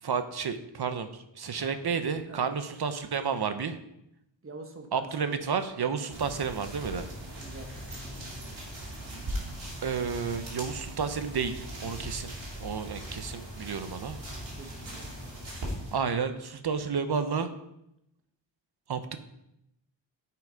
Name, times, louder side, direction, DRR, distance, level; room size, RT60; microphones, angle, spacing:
voice 1, 0.0-3.8 4.9-7.1 9.8-12.3 12.6-14.2 15.9-17.5 18.9-19.2, right 6 dB, 60° right, 10 dB, 0.8 m, -31 dB
voice 2, 1.6-2.0 2.3-2.5 4.4-5.5 7.0-8.5 14.6-15.8, right 3 dB, 30° right, 4 dB, 1.3 m, -47 dB
sound 1, 6.1-15.9, equal, 75° right, 2.9 m, -39 dB
9.4 x 5.9 x 5.1 m, 0.82 s
wide cardioid pair, 150°, 45 cm